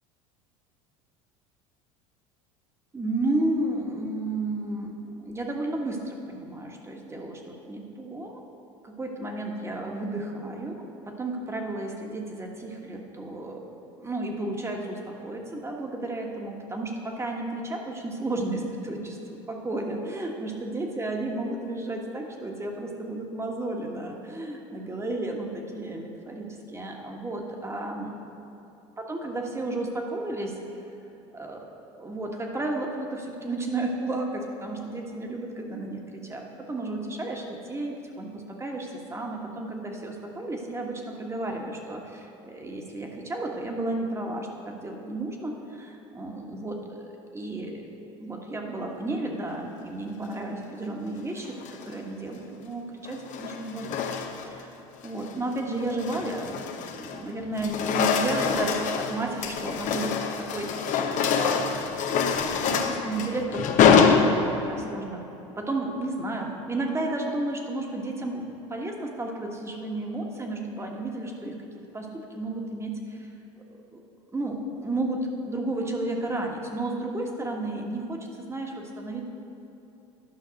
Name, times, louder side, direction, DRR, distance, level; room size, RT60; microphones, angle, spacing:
voice 1, 2.9-8.4 8.8-13.7 14.0-28.1 29.0-30.5 31.3-31.6 32.0-47.9 48.1-51.5 51.8-54.1 54.4-54.8 55.0-56.6 56.9-61.9 62.7-65.2 65.6-71.6 71.9-73.3 73.9-74.0 74.3-79.3, right 2 dB, 15° right, 1 dB, 1.5 m, -32 dB
sound 1, 51.4-51.9 53.0-54.6 55.0-55.3 55.8-57.2 57.5-64.8, left 6 dB, 50° left, 0.9 m, -25 dB
11.5 x 5.7 x 5.2 m, 3.0 s
hypercardioid pair, 85°, 16 cm